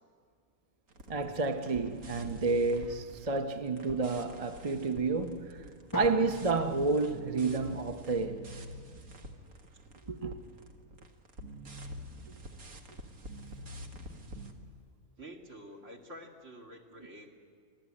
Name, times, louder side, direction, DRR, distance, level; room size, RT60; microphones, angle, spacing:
sound 1, 0.9-10.0 10.3-14.5, equal, 85° right, 2.1 m, -47 dB
voice 1, 1.1-5.6 5.9-8.5 10.1-10.3, right 3 dB, 30° right, 0.8 m, -30 dB
Drum, 5.9-8.2, left 2 dB, 25° left, 0.5 m, -44 dB
voice 2, 15.2-17.4, equal, 60° right, 2.6 m, -49 dB
25.0 x 15.5 x 9.9 m
omnidirectional pair, 1.5 m